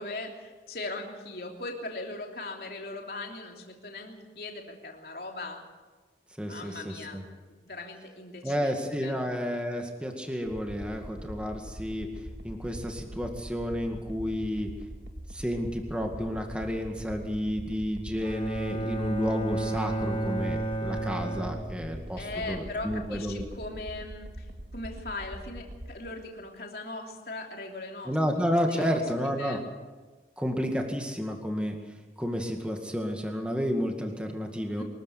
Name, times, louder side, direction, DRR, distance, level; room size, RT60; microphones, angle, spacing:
voice 1, 0.0-5.6 6.4-7.2 7.6-9.2 22.2-28.2 28.7-29.0 29.4-29.6 34.8-34.9, left 2 dB, 60° left, 1 dB, 3.1 m, -39 dB
voice 2, 6.4-7.2 8.4-12.1 12.4-14.7 15.3-23.4 28.1-29.6 30.4-31.8 32.2-34.8, equal, 5° right, 2 dB, 2.0 m, -31 dB
sound 1, 10.5-25.9, right 1 dB, 75° right, 1.9 m, -43 dB
Bowed string instrument, 18.2-22.3, right 1 dB, 30° left, 1.6 m, -32 dB
23.5 x 14.5 x 8.1 m, 1.3 s
head